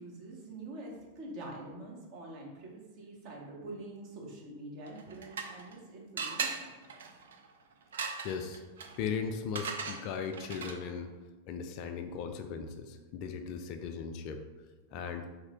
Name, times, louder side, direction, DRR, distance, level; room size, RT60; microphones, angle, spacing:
voice 1, 0.0-6.7, right 2 dB, 45° right, -2 dB, 1.0 m, -45 dB
sound 1, 4.9-5.8 6.2-11.0, right 5 dB, 65° right, 0.4 m, -40 dB
voice 2, 8.2-8.6 9.0-11.1 11.5-14.4 14.9-15.3, left 6 dB, 40° left, 6 dB, 0.3 m, -37 dB
3.2 x 2.7 x 3.6 m, 1.2 s
figure-of-eight pair, 90°, 0 cm